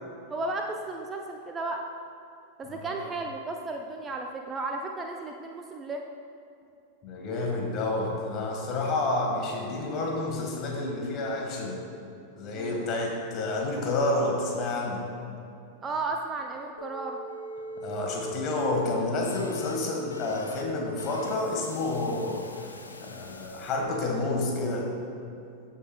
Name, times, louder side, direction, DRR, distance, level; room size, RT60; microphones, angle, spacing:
voice 1, 0.3-1.8 2.6-6.0 12.5-12.9 15.8-17.2, right 2 dB, 20° right, 2 dB, 0.5 m, -34 dB
voice 2, 2.7-3.0 7.0-11.8 12.4-15.0 17.8-22.7 23.0-24.9, left 2 dB, 35° left, -1 dB, 1.6 m, -29 dB
sound 1, 16.8-23.9, equal, 75° left, 0.5 m, -41 dB
14.0 x 5.6 x 2.3 m, 2.6 s
figure-of-eight pair, 90°, 0 cm